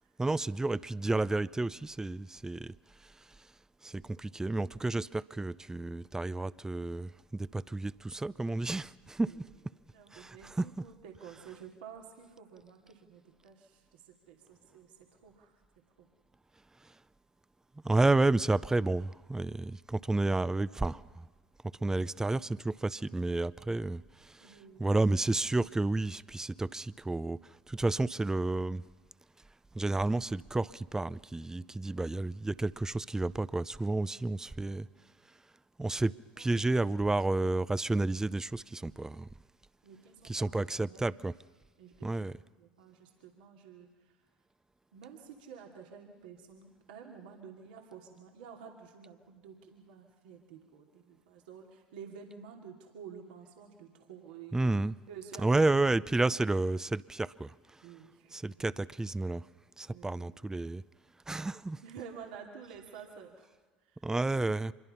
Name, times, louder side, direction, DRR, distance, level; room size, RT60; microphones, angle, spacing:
voice 1, 0.2-2.7 3.8-9.3 10.1-10.7 17.8-21.0 21.8-24.5 24.8-27.4 27.7-28.8 29.7-34.9 35.8-39.3 40.2-41.3 42.0-42.3 54.5-54.9 55.4-57.5 58.3-59.4 59.8-60.8 61.3-61.8 64.0-64.7, right 2 dB, 10° right, 0.6 m, -31 dB
voice 2, 9.9-15.6 24.4-25.0 31.5-32.0 36.4-36.6 39.8-41.2 41.8-42.1 42.6-44.2 44.9-54.6 55.1-55.8 56.3-56.4 57.8-58.6 59.9-60.4 61.8-63.5 63.8-64.1, right 7 dB, 80° right, 2.6 m, -51 dB
25.5 x 22.0 x 5.7 m
hypercardioid pair, 70°, 5 cm